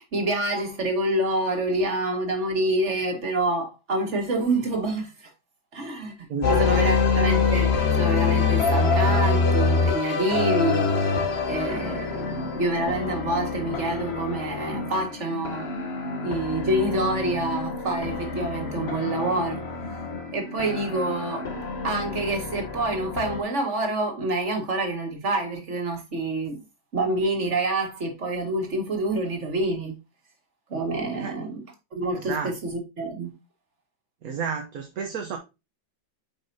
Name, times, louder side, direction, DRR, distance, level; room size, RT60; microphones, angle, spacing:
voice 1, 0.0-5.3 5.7-11.1 11.5-15.7 16.2-19.6 20.3-21.5 21.8-26.6 26.9-30.0 30.7-31.6 31.9-33.3, right 2 dB, 40° right, 2.0 m, -27 dB
voice 2, 6.3-6.7 31.1-31.3 32.1-32.5 34.2-35.4, right 6 dB, 55° right, 1.2 m, -31 dB
sound 1, 6.4-23.4, left 4 dB, 45° left, 1.0 m, -26 dB
9.0 x 5.4 x 2.7 m
omnidirectional pair, 2.1 m